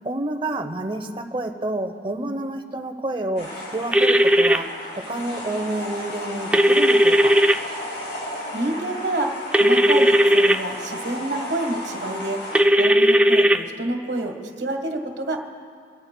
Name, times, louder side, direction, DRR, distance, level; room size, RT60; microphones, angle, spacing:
voice 1, 0.0-4.7 4.9-7.4, right 1 dB, 25° right, 7 dB, 0.7 m, -29 dB
sound 1, 3.4-12.6, left 1 dB, 60° left, 3.5 m, -34 dB
sound 2, 3.9-4.6 6.5-7.5 9.5-10.6 12.5-13.6, equal, 5° right, 0.3 m, -16 dB
voice 2, 8.5-12.4 12.8-15.4, right 2 dB, 70° right, 4 dB, 1.4 m, -28 dB
27.5 x 13.5 x 2.2 m, 2.2 s
head